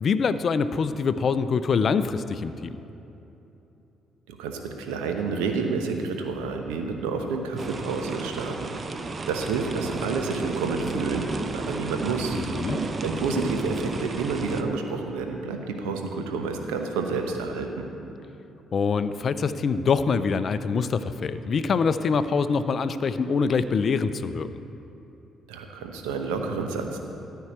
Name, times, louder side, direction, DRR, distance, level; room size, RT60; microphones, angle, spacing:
voice 1, 0.0-2.8 12.3-12.8 18.7-24.5, left 5 dB, 50° left, 12 dB, 0.5 m, -24 dB
voice 2, 4.3-8.7 9.3-11.3 11.5-12.4 13.0-17.8 25.5-27.1, right 4 dB, 75° right, 4 dB, 0.9 m, -29 dB
sound 1, 7.6-14.6, right 3 dB, 35° right, 0.7 m, -32 dB
14.0 x 4.6 x 8.1 m, 3.0 s
hypercardioid pair, 45°, 0 cm